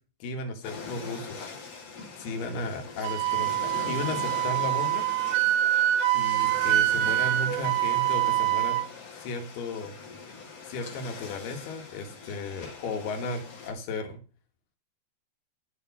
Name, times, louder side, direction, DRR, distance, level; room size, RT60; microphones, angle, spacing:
voice 1, 0.2-1.5 2.2-5.1 6.1-8.8 9.2-9.9 10.7-14.2, left 2 dB, 75° left, 5 dB, 3.5 m, -35 dB
sound 1, 0.6-13.7, left 4 dB, 45° left, 2.4 m, -42 dB
Wind instrument woodwind instrument, 3.0-8.8, right 13 dB, 80° right, 2.3 m, -25 dB
12.5 x 4.9 x 5.3 m, 0.35 s
omnidirectional pair, 4.7 m